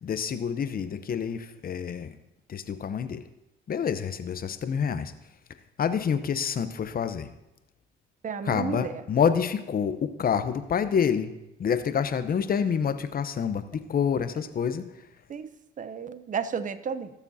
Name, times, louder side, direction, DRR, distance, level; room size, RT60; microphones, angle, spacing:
voice 1, 0.0-2.2 2.5-3.2 3.7-5.1 5.8-7.3 8.4-11.3 11.6-14.8, left 7 dB, 50° left, 10 dB, 0.8 m, -27 dB
voice 2, 8.2-9.0 15.3-17.1, right 6 dB, 40° right, 13 dB, 0.7 m, -33 dB
17.5 x 7.0 x 2.8 m, 0.91 s
supercardioid pair, 70°, 20 cm